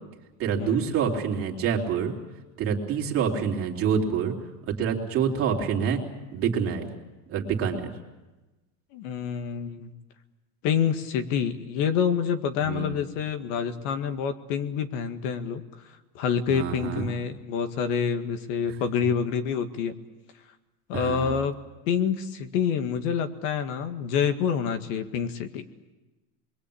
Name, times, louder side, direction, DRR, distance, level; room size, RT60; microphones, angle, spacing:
voice 1, 0.4-2.1 2.6-4.3 4.7-6.0 6.3-6.9 7.3-7.9 12.6-13.0 16.5-17.1 20.9-21.3, right 7 dB, 30° right, 1 dB, 3.4 m, -27 dB
voice 2, 8.9-9.9 10.6-15.6 16.1-19.9 20.9-21.5 21.9-25.6, left 7 dB, 55° left, 8 dB, 2.0 m, -27 dB
28.0 x 22.5 x 8.7 m, 1.1 s
supercardioid pair, 170°, 44 cm